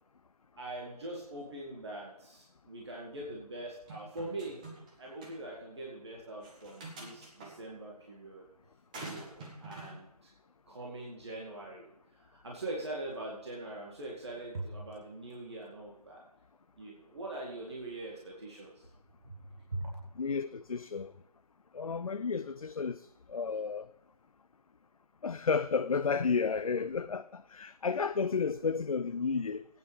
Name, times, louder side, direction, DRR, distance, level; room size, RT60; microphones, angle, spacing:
voice 1, 0.6-4.6 5.0-8.4 9.0-10.3 10.7-16.2 16.8-18.9 19.2-19.4 19.7-20.0, right 2 dB, 45° right, 2.1 m, -42 dB
sound 1, 3.9-4.9 5.2-5.3 6.4-7.5 8.9-9.9, right 2 dB, 10° right, 1.1 m, -46 dB
voice 2, 20.2-21.1 21.7-23.9 25.2-29.7, left 5 dB, 60° left, 0.4 m, -32 dB
18.5 x 9.2 x 3.4 m
figure-of-eight pair, 155°, 20 cm